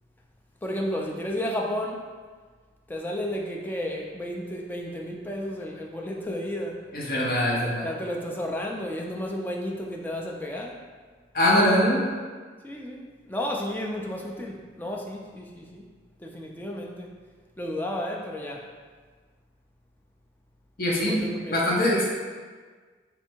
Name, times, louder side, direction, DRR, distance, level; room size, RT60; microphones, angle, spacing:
voice 1, 0.6-2.0 2.9-6.8 7.8-10.7 12.6-15.8 16.2-17.1 17.6-18.6 21.1-21.6, left 1 dB, 10° left, -1 dB, 0.3 m, -32 dB
voice 2, 6.9-7.9 11.3-12.0 20.8-21.2 21.5-22.0, left 1 dB, 50° left, -4 dB, 0.8 m, -22 dB
3.2 x 2.6 x 4.4 m, 1.5 s
head